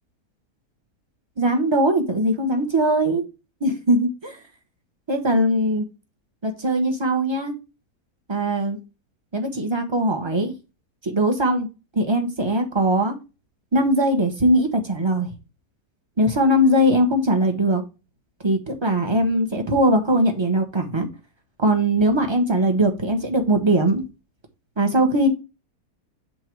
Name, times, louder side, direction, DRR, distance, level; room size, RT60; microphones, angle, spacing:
voice 1, 1.4-3.2 3.6-4.4 5.1-5.9 6.4-7.5 8.3-8.8 9.3-10.5 11.0-11.7 11.9-13.1 13.7-15.3 16.2-17.8 18.4-21.1 21.6-24.0 24.8-25.3, right 1 dB, 20° right, 1.2 m, -20 dB
7.0 x 3.8 x 4.7 m
omnidirectional pair, 1.7 m